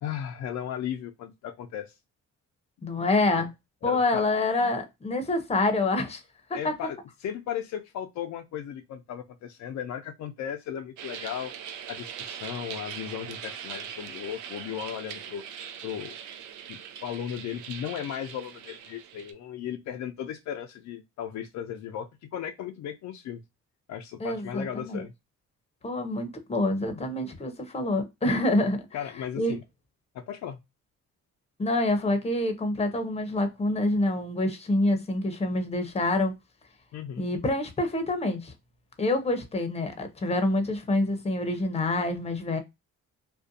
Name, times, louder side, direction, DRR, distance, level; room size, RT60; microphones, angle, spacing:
voice 1, 0.0-1.9 3.8-4.3 6.5-11.5 11.9-16.1 16.7-23.4 23.9-25.1 28.9-29.6 30.1-30.6 36.9-37.3, left 9 dB, 65° left, 0.5 m, -36 dB
voice 2, 2.8-3.5 3.8-6.2 6.5-6.7 24.2-25.0 25.8-28.8 29.4-29.6 31.6-36.3 37.2-38.5 39.0-42.6, left 2 dB, 20° left, 0.7 m, -26 dB
sound 1, 11.0-19.3, right 8 dB, 75° right, 0.5 m, -41 dB
2.5 x 2.2 x 2.5 m
cardioid pair, 90°, 30 cm